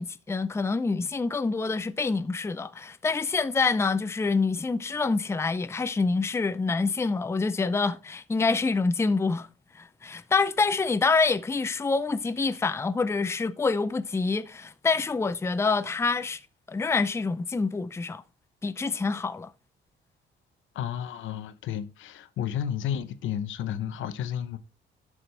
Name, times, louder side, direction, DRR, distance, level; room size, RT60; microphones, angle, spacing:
voice 1, 0.0-9.5 9.7-16.4 16.7-18.2 18.6-19.5, left 4 dB, 15° left, 0.5 m, -26 dB
voice 2, 20.7-24.6, left 9 dB, 80° left, 0.9 m, -32 dB
11.0 x 6.2 x 3.3 m
cardioid pair, 90°, 20 cm